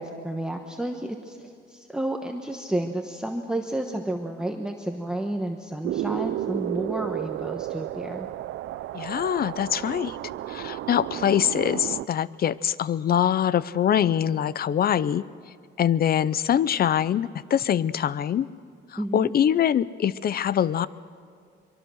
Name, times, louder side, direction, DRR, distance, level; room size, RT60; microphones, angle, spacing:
voice 1, 0.0-8.3 19.0-19.3, right 1 dB, 5° right, 3 dB, 1.1 m, -31 dB
sound 1, 5.8-12.1, right 14 dB, 80° right, 0.5 m, -32 dB
voice 2, 8.9-10.2 10.5-15.2 15.8-18.5 18.9-20.9, left 9 dB, 50° left, 18 dB, 0.6 m, -24 dB
23.5 x 23.5 x 6.4 m, 2.3 s
cardioid pair, 135°, 20 cm